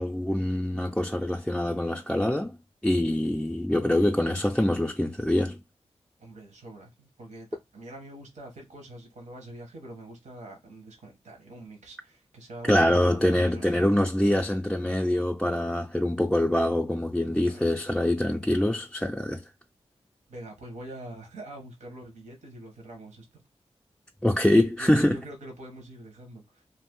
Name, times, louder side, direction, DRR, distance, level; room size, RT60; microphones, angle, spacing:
voice 1, 0.0-2.5 2.8-5.6 12.7-19.4 24.2-25.2, left 1 dB, 5° left, 0.4 m, -24 dB
voice 2, 6.2-13.7 17.4-17.6 20.3-23.4 24.8-26.6, right 1 dB, 85° right, 0.9 m, -45 dB
2.6 x 2.4 x 3.6 m
cardioid pair, 40°, 12 cm